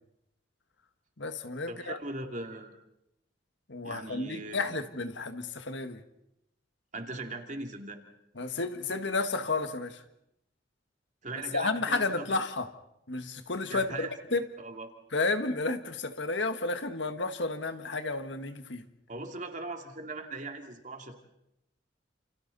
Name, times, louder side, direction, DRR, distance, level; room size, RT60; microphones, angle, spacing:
voice 1, 1.2-2.0 3.7-6.0 8.4-10.0 11.5-12.7 13.1-14.4 15.1-18.8, left 3 dB, 75° left, 8 dB, 1.7 m, -32 dB
voice 2, 1.7-2.7 3.8-4.6 6.9-8.0 11.2-12.3 13.7-14.1 14.6-14.9 19.1-21.2, right 2 dB, 40° right, 4 dB, 2.6 m, -39 dB
29.5 x 29.0 x 4.1 m, 0.83 s
head